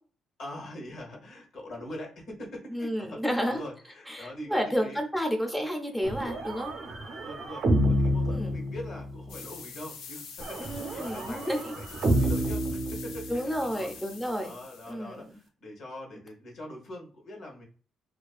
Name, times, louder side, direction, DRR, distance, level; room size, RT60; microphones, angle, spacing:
voice 1, 0.4-5.0 6.9-10.2 10.5-13.9 14.4-17.6, left 1 dB, 65° left, 0 dB, 0.8 m, -43 dB
voice 2, 2.7-3.6 4.1-6.7 8.3-8.5 10.6-11.7 13.3-14.6 14.9-15.3, equal, 5° left, 3 dB, 0.4 m, -31 dB
sound 1, 6.0-9.3 10.4-13.7, equal, 65° right, 0.6 m, -29 dB
sound 2, 9.3-14.9, left 6 dB, 85° left, 0.4 m, -45 dB
2.4 x 2.3 x 2.3 m, 0.41 s
cardioid pair, 90°, 0 cm